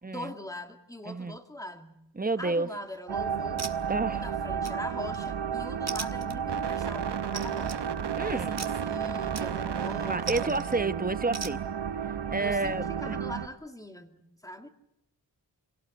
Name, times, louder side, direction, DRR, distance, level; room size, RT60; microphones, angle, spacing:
voice 1, 0.1-2.1 2.4-3.7 4.1-7.9 8.3-10.6 12.4-14.7, left 1 dB, 10° left, 2.4 m, -42 dB
voice 2, 1.1-1.4 2.2-2.7 3.9-4.2 8.2-8.5 10.1-11.6 12.0-13.2, right 3 dB, 20° right, 1.0 m, -30 dB
sound 1, 2.8-3.1 3.6-4.2 4.7-5.3 5.9-6.7 7.3-7.8 8.6-8.9 9.4-9.8 10.3-10.8 11.3-11.6, right 5 dB, 40° right, 1.6 m, -39 dB
sound 2, 3.1-13.5, right 7 dB, 85° right, 1.1 m, -32 dB
27.0 x 17.5 x 8.0 m
wide cardioid pair, 100°, 40 cm